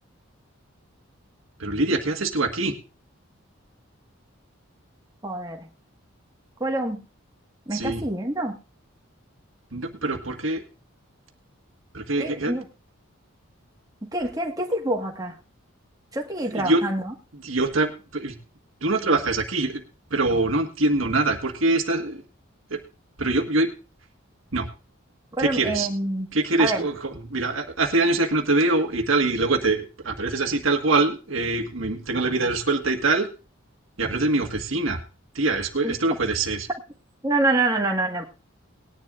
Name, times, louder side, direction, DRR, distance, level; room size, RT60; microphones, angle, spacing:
voice 1, 1.6-2.7 7.7-8.0 9.7-10.6 11.9-12.5 16.5-16.8 17.4-18.3 18.8-19.8 20.1-22.2 22.7-22.8 23.2-23.7 24.5-24.7 25.4-25.9 26.3-33.3 34.0-35.0 35.3-36.7, right 2 dB, 70° right, 5 dB, 1.6 m, -24 dB
voice 2, 5.2-5.7 6.6-7.0 7.7-8.6 12.2-12.6 14.0-15.4 16.1-17.1 25.4-26.3 26.6-26.8 35.8-35.9 37.2-38.3, right 2 dB, 15° right, 1 dB, 1.6 m, -26 dB
19.5 x 10.5 x 2.5 m, 0.32 s
head